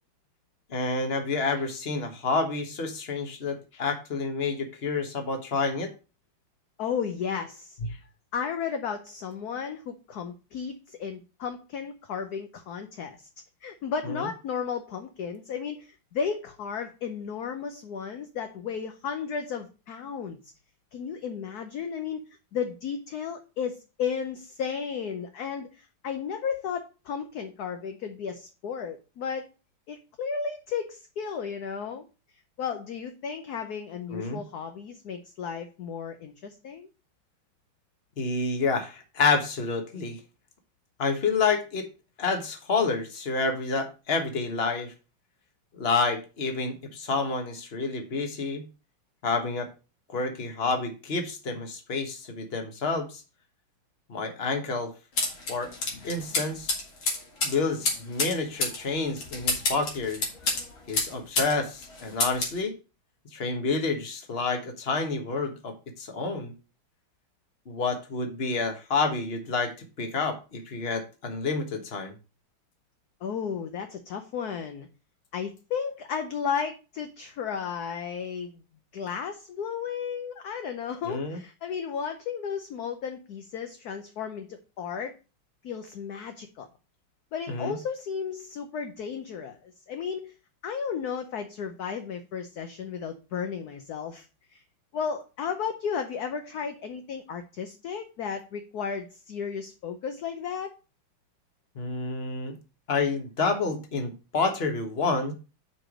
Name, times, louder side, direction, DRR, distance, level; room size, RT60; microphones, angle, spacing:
voice 1, 0.7-5.9 14.0-14.3 34.1-34.4 38.2-40.2 41.0-41.9 42.2-44.9 45.7-48.6 49.2-49.7 50.1-53.2 54.1-54.9 55.5-55.7 56.0-56.7 57.4-60.2 60.9-62.7 63.3-66.5 67.7-72.1 81.0-81.4 87.5-87.8 101.7-102.5 102.9-105.3, left 4 dB, 35° left, 6 dB, 1.4 m, -29 dB
voice 2, 6.8-7.8 8.3-13.3 13.6-20.4 20.9-22.2 22.5-29.5 29.9-32.0 32.6-36.9 73.2-74.9 75.3-78.6 78.9-85.2 85.6-86.7 87.3-90.3 90.6-94.3 94.5-94.6 94.9-100.7, left 6 dB, 60° left, 7 dB, 1.1 m, -34 dB
sound 1, 55.2-61.6 61.8-62.6, left 3 dB, 90° left, 3.0 m, -29 dB
6.0 x 4.8 x 6.1 m, 0.32 s
omnidirectional pair, 2.1 m